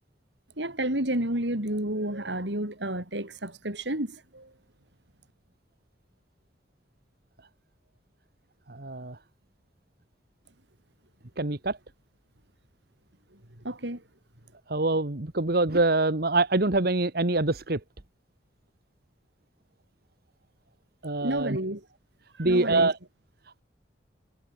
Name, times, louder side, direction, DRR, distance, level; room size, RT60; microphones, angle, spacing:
voice 1, 0.6-4.5 13.6-14.0 21.2-21.8 22.4-22.9, right 1 dB, 85° right, 7.6 m, -30 dB
voice 2, 8.7-9.2 11.4-11.8 14.7-17.8 21.0-21.6 22.4-23.0, right 2 dB, 60° right, 1.6 m, -25 dB
head